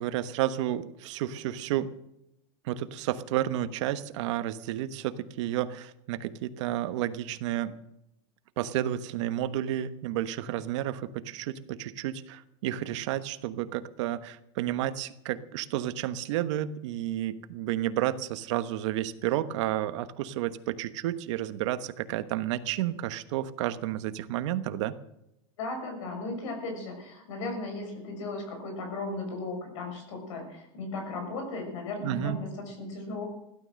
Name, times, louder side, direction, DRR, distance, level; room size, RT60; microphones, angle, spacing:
voice 1, 0.0-1.9 2.6-7.8 8.6-25.0 32.0-32.4, right 12 dB, 70° right, 11 dB, 1.2 m, -31 dB
voice 2, 25.6-33.2, left 2 dB, 85° left, 4 dB, 6.4 m, -36 dB
16.5 x 12.0 x 6.5 m, 0.83 s
supercardioid pair, 160°, 16 cm